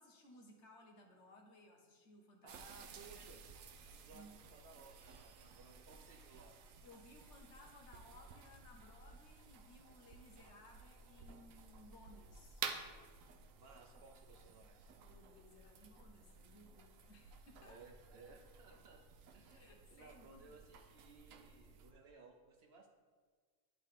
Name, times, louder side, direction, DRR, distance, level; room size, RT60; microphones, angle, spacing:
voice 1, 0.0-3.3 4.1-4.4 6.8-12.6 15.0-17.8 18.7-19.0 19.5-20.6, left 1 dB, 65° left, 1 dB, 1.2 m, -61 dB
voice 2, 2.4-3.4 3.9-6.6 13.5-14.9 17.6-19.0 19.3-22.9, right 4 dB, 60° right, 3 dB, 0.8 m, -60 dB
sound 1, 2.5-21.9, right 6 dB, 90° right, 1.0 m, -53 dB
10.0 x 3.7 x 3.6 m, 1.5 s
omnidirectional pair, 1.3 m